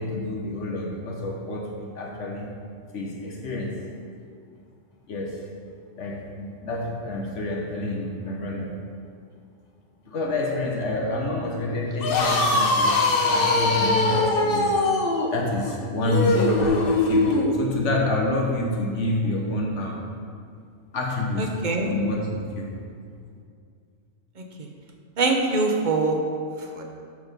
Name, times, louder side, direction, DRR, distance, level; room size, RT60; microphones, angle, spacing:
voice 1, 0.0-2.5 2.9-3.8 5.1-5.5 6.0-8.7 10.0-14.7 15.3-20.0 20.9-22.8, left 1 dB, 70° left, -1 dB, 1.2 m, -28 dB
sound 1, 11.9-17.5, left 2 dB, 50° left, 1.0 m, -22 dB
voice 2, 21.4-21.9 25.2-26.2 26.7-26.9, right 3 dB, 45° right, 2 dB, 0.8 m, -23 dB
6.3 x 6.3 x 5.2 m, 2.3 s
omnidirectional pair, 1.3 m